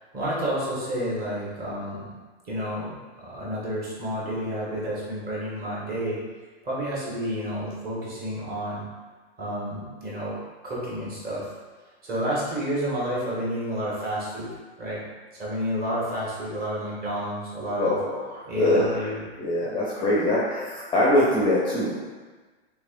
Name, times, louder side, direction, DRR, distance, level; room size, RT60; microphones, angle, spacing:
voice 1, 0.1-2.1 2.4-6.2 6.6-8.9 9.4-11.5 12.0-14.5 14.8-15.0 15.3-18.0 18.4-19.2 19.6-19.7, equal, 30° right, -6 dB, 1.3 m, -30 dB
voice 2, 17.8-19.0 19.4-22.0, left 1 dB, 15° left, -6 dB, 0.5 m, -23 dB
3.2 x 3.2 x 2.5 m, 1.3 s
hypercardioid pair, 110°, 33 cm